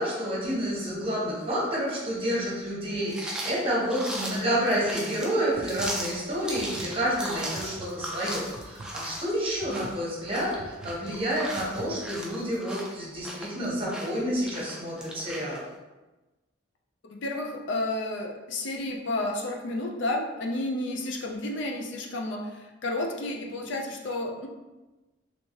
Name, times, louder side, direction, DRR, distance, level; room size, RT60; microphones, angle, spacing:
voice 1, 0.0-15.6, equal, 30° right, -5 dB, 1.0 m, -29 dB
sound 1, 3.1-15.6, right 1 dB, 5° right, 0.4 m, -38 dB
sound 2, 5.5-12.3, right 2 dB, 60° right, 0.4 m, -46 dB
voice 2, 17.0-24.5, left 2 dB, 65° left, 1 dB, 0.5 m, -31 dB
3.2 x 3.1 x 2.8 m, 1.1 s
head